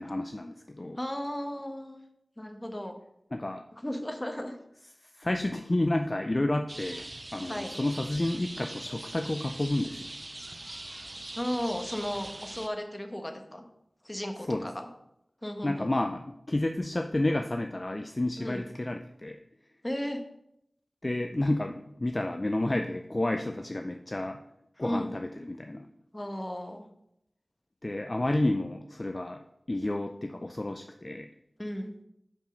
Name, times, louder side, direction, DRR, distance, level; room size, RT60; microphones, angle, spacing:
voice 1, 0.0-1.0 3.3-3.6 5.0-7.1 7.3-10.1 14.5-14.7 15.6-19.4 21.0-24.4 24.8-25.9 27.8-29.4 29.7-31.3, left 1 dB, 40° left, 6 dB, 0.4 m, -30 dB
voice 2, 1.0-2.0 2.4-2.9 3.7-4.6 7.5-7.7 11.4-13.6 14.0-14.9 15.4-15.9 18.4-18.6 19.8-20.2 24.8-25.1 26.1-26.9 31.6-31.9, equal, 20° left, 5 dB, 1.1 m, -35 dB
sound 1, 6.7-12.7, right 1 dB, 40° right, 0.4 m, -42 dB
5.3 x 5.2 x 6.3 m, 0.79 s
wide cardioid pair, 45°, 0 cm